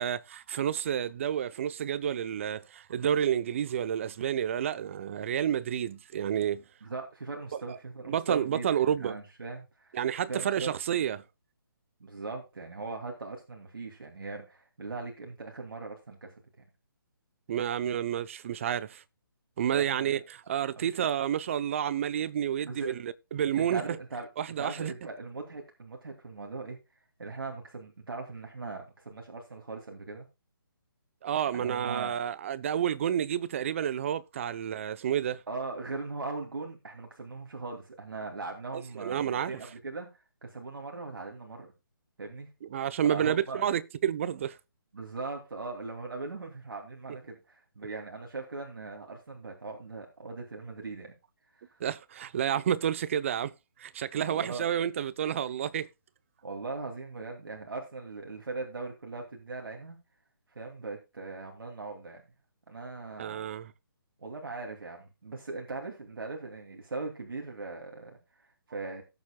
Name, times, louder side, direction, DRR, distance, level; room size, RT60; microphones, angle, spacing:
voice 1, 0.0-6.6 7.7-7.8 8.1-9.2 9.9-11.2 17.5-19.0 19.6-23.8 24.4-24.9 31.2-35.4 39.0-39.6 42.7-44.6 51.8-53.5 53.8-55.9 63.2-63.7, right 9 dB, 35° right, 0.6 m, -30 dB
voice 2, 6.8-10.0 10.3-10.7 12.0-16.4 19.7-20.2 20.7-21.0 22.6-23.0 23.6-24.3 24.6-26.8 27.2-30.3 31.5-32.3 35.5-41.7 42.2-42.5 43.1-43.6 44.9-51.1 51.5-51.8 54.2-54.7 56.4-60.0 60.5-62.2 62.7-63.5 64.2-69.0, right 3 dB, 75° right, 2.6 m, -40 dB
17.5 x 7.3 x 2.2 m
hypercardioid pair, 155°, 12 cm